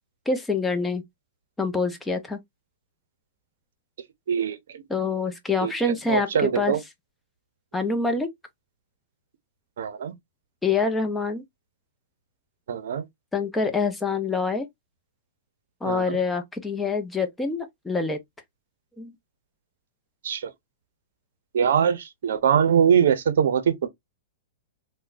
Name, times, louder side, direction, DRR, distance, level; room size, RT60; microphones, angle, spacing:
voice 1, 0.3-1.0 1.6-2.4 4.9-6.7 7.7-8.3 10.6-11.4 13.3-14.7 15.8-18.2 19.0-19.1, left 4 dB, 10° left, 0.7 m, -26 dB
voice 2, 4.3-4.8 5.6-6.8 9.8-10.1 12.7-13.0 15.9-16.2 20.2-20.5 21.5-23.9, right 8 dB, 70° right, 0.6 m, -23 dB
3.6 x 2.2 x 2.5 m
hypercardioid pair, 120°, 0 cm